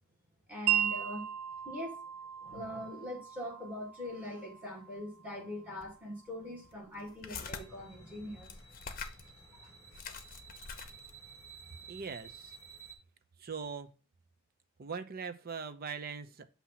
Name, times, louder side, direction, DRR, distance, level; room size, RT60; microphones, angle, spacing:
voice 1, 0.5-1.2 1.6-2.0 2.4-8.6 9.6-9.7, left 1 dB, 5° right, 2.2 m, -42 dB
Wind chime, 0.7-6.7, right 11 dB, 85° right, 0.6 m, -37 dB
sound 1, 5.8-5.9 6.6-7.6 8.4-9.3 9.6-9.7 9.9-11.2, left 5 dB, 40° left, 0.8 m, -44 dB
sound 2, 7.4-13.0, right 4 dB, 15° left, 1.4 m, -53 dB
voice 2, 11.9-12.6 13.4-13.9 14.8-16.5, right 5 dB, 45° right, 0.6 m, -41 dB
7.2 x 2.8 x 5.6 m
head